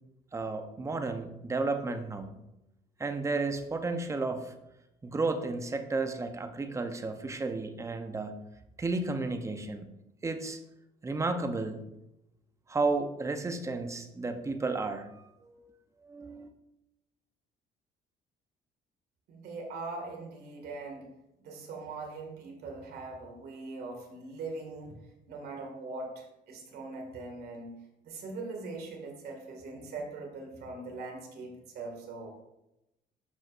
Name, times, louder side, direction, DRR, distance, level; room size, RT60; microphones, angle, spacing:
voice 1, 0.3-2.4 3.0-4.5 5.0-8.4 8.8-9.9 10.2-10.6 11.0-11.8 12.7-15.7 16.0-16.5, right 3 dB, 15° right, 7 dB, 0.7 m, -33 dB
voice 2, 19.3-21.1 21.4-24.9 25.3-27.7 28.0-32.3, right 3 dB, 70° right, 2 dB, 2.1 m, -41 dB
12.0 x 5.1 x 2.5 m, 0.91 s
cardioid pair, 110°, 17 cm